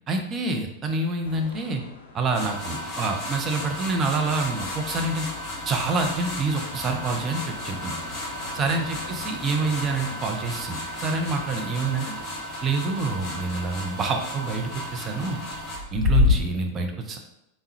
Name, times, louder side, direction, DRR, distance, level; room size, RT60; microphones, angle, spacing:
voice 1, 0.1-1.8 2.1-5.3 5.7-7.9 8.5-12.1 12.6-15.4 15.9-17.2, right 3 dB, 25° right, 4 dB, 0.4 m, -27 dB
sound 1, 1.2-16.3, left 4 dB, 65° left, 0.5 m, -33 dB
sound 2, 2.3-15.8, left 1 dB, 25° left, 0.8 m, -35 dB
3.5 x 2.0 x 2.7 m, 0.85 s
figure-of-eight pair, 90°, 0 cm